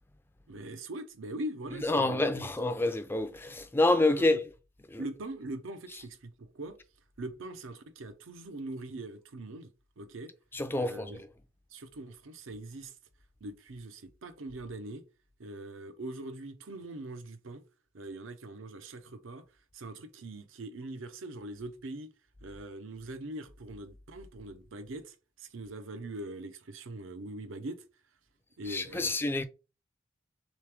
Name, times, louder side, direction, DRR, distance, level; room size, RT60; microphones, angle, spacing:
voice 1, 0.5-2.5 4.2-4.4 5.0-6.8 7.2-10.3 10.8-11.2 11.7-12.9 13.4-15.0 15.4-17.6 17.9-19.4 19.7-22.1 22.4-27.8 28.6-29.1, right 1 dB, 80° right, 0.6 m, -42 dB
voice 2, 1.8-4.4 4.9-5.0 10.5-11.3 28.7-29.4, left 2 dB, 10° left, 0.3 m, -28 dB
3.3 x 3.1 x 3.4 m
head